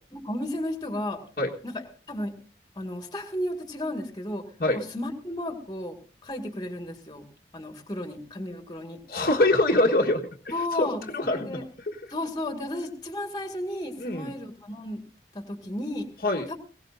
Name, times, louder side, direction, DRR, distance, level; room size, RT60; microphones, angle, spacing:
voice 1, 0.1-1.2 1.6-2.3 2.8-4.5 4.7-6.0 6.2-7.3 7.5-9.0 10.5-11.6 12.1-15.0 15.3-16.1 16.5-16.6, left 1 dB, 25° left, 5 dB, 2.0 m, -33 dB
voice 2, 9.1-11.6 11.9-12.0 14.0-14.3 16.2-16.5, left 2 dB, 55° left, 0 dB, 1.4 m, -24 dB
21.0 x 17.5 x 2.6 m, 0.38 s
head